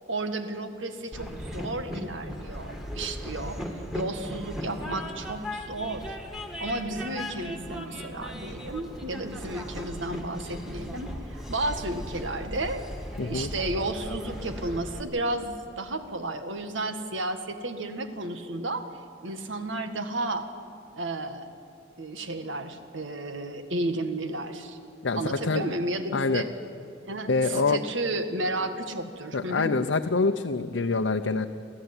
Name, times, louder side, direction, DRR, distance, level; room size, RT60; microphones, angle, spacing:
voice 1, 0.1-6.2 6.6-12.8 13.2-18.9 19.2-20.5 21.0-21.5 22.0-24.8 25.2-26.5 27.1-29.7, right 2 dB, 85° right, 8 dB, 1.9 m, -32 dB
Train, 1.1-15.0, equal, ahead, 2.2 m, -37 dB
voice 2, 13.2-13.5 25.0-25.7 26.1-26.4 27.3-27.8 29.3-31.5, left 3 dB, 75° left, 5 dB, 0.7 m, -25 dB
27.5 x 15.0 x 9.8 m, 2.5 s
head